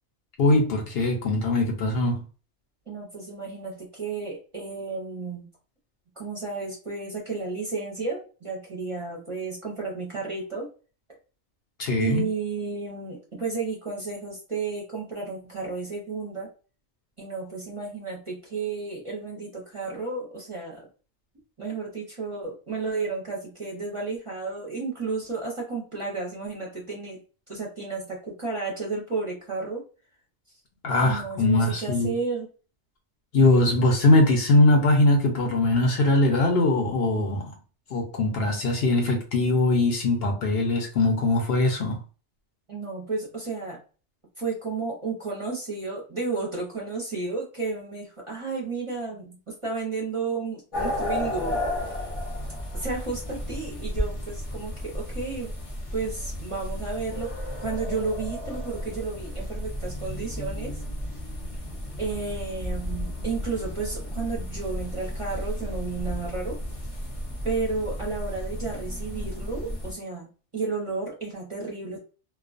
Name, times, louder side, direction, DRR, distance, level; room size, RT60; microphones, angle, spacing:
voice 1, 0.4-2.2 11.8-12.2 30.8-32.1 33.3-37.5 37.9-42.0, left 2 dB, 65° left, 0.8 m, -21 dB
voice 2, 2.9-5.5 6.2-10.7 12.0-16.5 17.2-20.9 21.6-27.2 27.5-29.8 31.0-32.5 42.7-43.8 44.4-52.1 52.7-55.5 55.9-57.3 57.6-60.8 62.0-66.6 67.4-72.0, right 4 dB, 30° right, 0.6 m, -32 dB
sound 1, 50.7-69.9, left 1 dB, 35° left, 0.7 m, -33 dB
2.3 x 2.2 x 2.4 m
omnidirectional pair, 1.2 m